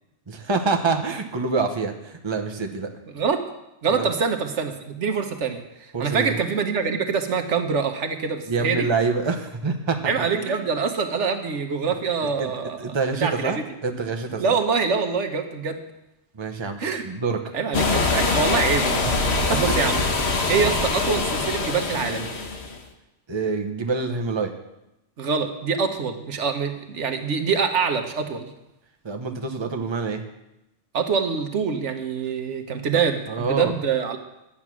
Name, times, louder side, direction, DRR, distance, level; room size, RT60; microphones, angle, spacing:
voice 1, 0.3-2.9 3.9-4.1 5.9-6.4 8.5-10.7 12.4-12.5 12.8-14.5 16.3-17.4 19.0-19.7 23.3-24.5 29.0-30.2 32.9-33.7, right 4 dB, 25° right, 4 dB, 1.0 m, -26 dB
voice 2, 3.1-3.4 3.8-8.9 10.0-13.0 13.2-13.6 14.4-15.8 16.8-17.0 17.5-20.0 20.5-22.3 25.2-28.5 30.9-34.2, right 5 dB, 75° right, 6 dB, 1.3 m, -25 dB
sound 1, 17.7-22.8, left 3 dB, 60° left, 1.5 m, -23 dB
11.0 x 8.6 x 6.1 m, 0.92 s
omnidirectional pair, 1.2 m